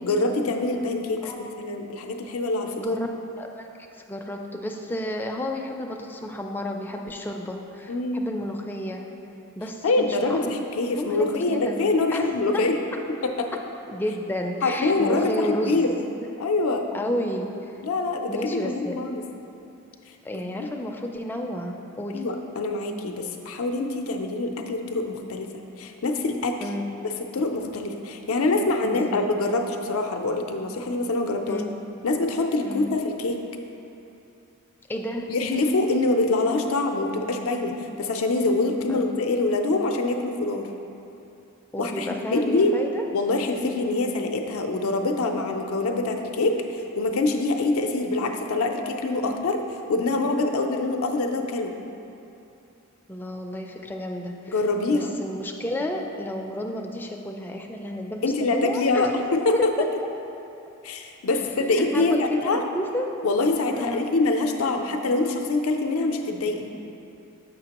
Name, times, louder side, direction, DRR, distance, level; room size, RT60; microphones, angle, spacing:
voice 1, 0.0-3.0 7.9-8.2 9.8-12.8 13.2-13.5 14.6-15.9 16.4-16.8 17.8-19.2 22.1-25.5 25.8-26.6 27.0-31.6 32.0-33.4 35.3-40.7 41.8-42.7 43.1-49.6 49.9-51.7 54.5-55.1 58.2-59.7 60.8-62.6 63.2-66.7, left 2 dB, 80° left, 4 dB, 0.5 m, -25 dB
voice 2, 1.2-1.7 2.8-3.1 3.4-9.0 9.6-10.6 10.9-11.8 12.1-12.6 13.9-16.0 16.9-17.8 18.3-18.9 20.2-22.2 26.6-26.9 28.8-29.3 31.5-31.7 32.6-32.9 34.9-35.3 38.9-39.1 41.7-43.0 49.2-49.4 53.1-59.1 59.5-59.9 61.3-63.1 63.7-64.1, left 1 dB, 10° left, 1 dB, 0.3 m, -31 dB
6.7 x 5.7 x 2.9 m, 2.8 s
head